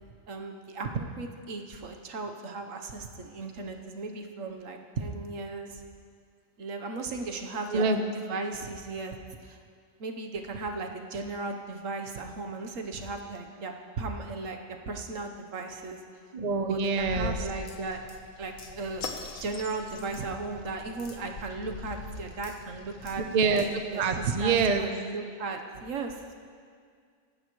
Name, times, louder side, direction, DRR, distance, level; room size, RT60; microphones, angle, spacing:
voice 1, 0.3-5.8 6.6-9.2 9.4-9.6 10.0-14.6 14.9-16.0 16.7-18.0 18.4-19.1 19.4-23.2 23.9-26.3, right 3 dB, 75° right, 4 dB, 1.4 m, -36 dB
voice 2, 16.3-17.4 23.3-24.8, right 4 dB, 40° right, 6 dB, 0.7 m, -26 dB
sound 1, 17.0-24.2, left 4 dB, 85° left, 1.4 m, -42 dB
19.0 x 14.5 x 3.1 m, 2.1 s
omnidirectional pair, 1.4 m